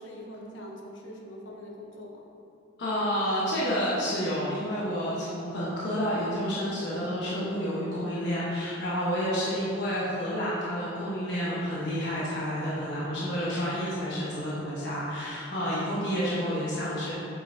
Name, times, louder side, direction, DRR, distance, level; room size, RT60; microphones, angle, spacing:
voice 1, 0.0-2.2, equal, 85° left, -1 dB, 1.0 m, -43 dB
voice 2, 2.8-17.1, equal, 65° left, -8 dB, 1.3 m, -29 dB
7.8 x 5.6 x 2.8 m, 2.9 s
head